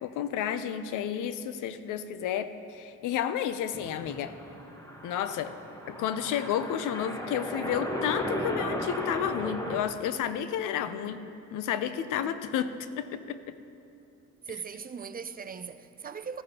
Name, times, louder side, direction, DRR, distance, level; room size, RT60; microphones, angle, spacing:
voice 1, 0.0-4.3 5.0-5.5 5.9-11.2 11.5-13.6, left 9 dB, 85° left, 0.6 m, -31 dB
sound 1, 3.7-9.8, equal, 10° left, 1.4 m, -36 dB
voice 2, 14.4-16.4, right 6 dB, 30° right, 0.5 m, -39 dB
14.0 x 13.0 x 2.9 m
cardioid pair, 90°, 30 cm